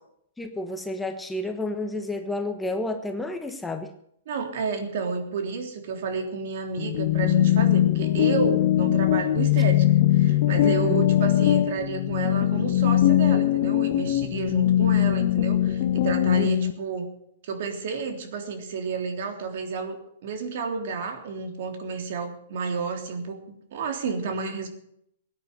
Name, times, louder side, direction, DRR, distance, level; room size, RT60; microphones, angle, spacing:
voice 1, 0.4-3.9 10.6-11.0 16.4-16.5, left 2 dB, 5° left, 6 dB, 1.2 m, -31 dB
voice 2, 4.3-9.9 10.1-17.1 17.4-24.7, right 5 dB, 60° right, 5 dB, 3.4 m, -31 dB
sound 1, 6.8-16.7, left 12 dB, 50° left, 1.1 m, -21 dB
17.5 x 9.6 x 7.9 m, 0.71 s
hypercardioid pair, 145°, 0 cm